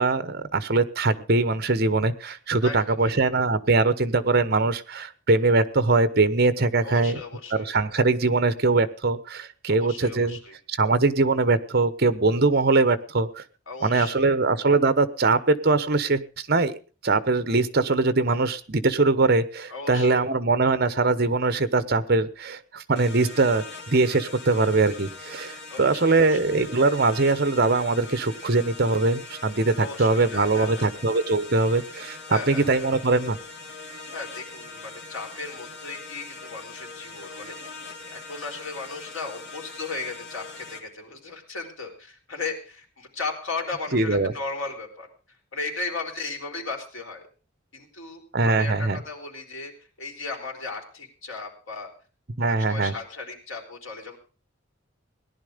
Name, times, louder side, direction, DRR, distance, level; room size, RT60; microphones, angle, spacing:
voice 1, 0.0-7.2 7.5-10.4 10.7-13.4 13.8-16.7 17.0-32.2 32.5-33.4 43.9-44.3 48.3-49.0 52.4-52.9, right 3 dB, 50° right, 14 dB, 1.0 m, -22 dB
voice 2, 2.6-3.1 6.8-7.7 9.7-10.5 13.7-14.4 19.7-20.3 25.7-26.4 29.8-31.0 32.3-32.9 34.1-37.7 38.1-47.2 47.7-51.9 52.4-54.2, left 3 dB, 75° left, 1 dB, 4.3 m, -36 dB
sound 1, 23.0-40.8, left 3 dB, 55° left, 2.5 m, -41 dB
18.0 x 11.0 x 5.2 m, 0.37 s
head